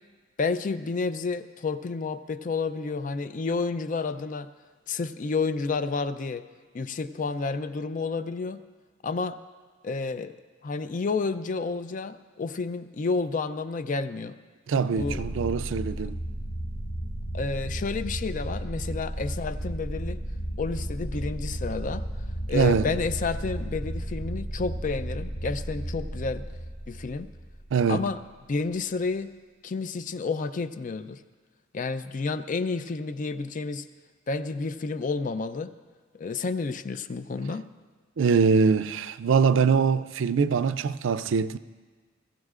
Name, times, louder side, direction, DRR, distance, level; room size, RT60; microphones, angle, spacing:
voice 1, 0.4-4.5 4.9-6.4 6.7-8.6 9.0-9.4 9.8-10.3 10.6-14.3 14.9-15.2 17.3-20.2 20.6-22.1 22.5-26.5 26.9-27.3 27.9-28.2 28.5-29.3 29.6-31.2 31.7-33.9 34.3-35.7 36.1-37.7, left 4 dB, 45° left, 0.4 m, -30 dB
voice 2, 14.7-16.2 22.5-22.9 27.7-28.0 38.2-41.6, right 5 dB, 85° right, 0.4 m, -23 dB
sound 1, 15.0-27.8, right 1 dB, 70° left, 2.9 m, -34 dB
22.0 x 15.0 x 2.5 m
head